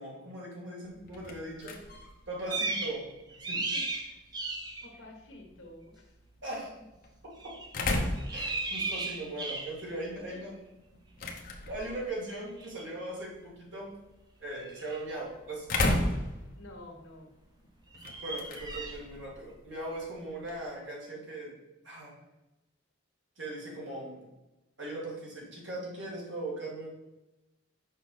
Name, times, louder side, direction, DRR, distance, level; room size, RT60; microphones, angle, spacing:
voice 1, 0.0-1.8 2.3-3.0 3.3-3.6 6.4-6.7 7.2-7.5 8.3-10.5 11.7-13.9 14.4-16.0 18.2-21.6 21.8-22.1 23.4-24.3 24.8-26.9, right 1 dB, 65° right, -4 dB, 2.1 m, -39 dB
sound 1, 0.8-20.7, left 2 dB, 45° left, 0.8 m, -38 dB
voice 2, 2.4-3.0 3.5-4.2 4.8-6.2 6.5-6.8 10.3-10.4 11.6-11.7 16.5-17.3, left 1 dB, 75° left, 2 dB, 1.4 m, -50 dB
sound 2, 2.5-3.0 3.3-4.9 7.4-7.7 8.2-9.9 12.6-12.7 14.6-15.0 17.9-19.0, right 3 dB, 20° right, 0.6 m, -35 dB
6.5 x 4.8 x 4.0 m, 1.0 s
head